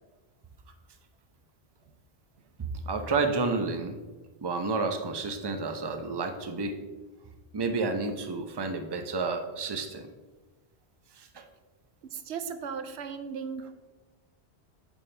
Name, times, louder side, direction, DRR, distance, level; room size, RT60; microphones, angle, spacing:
voice 1, 2.9-4.0 4.4-6.8 7.5-10.1 11.2-11.4, right 3 dB, 30° right, 6 dB, 0.6 m, -30 dB
voice 2, 12.1-13.7, right 6 dB, 90° right, 9 dB, 0.9 m, -36 dB
9.0 x 7.3 x 3.3 m, 1.2 s
omnidirectional pair, 1.1 m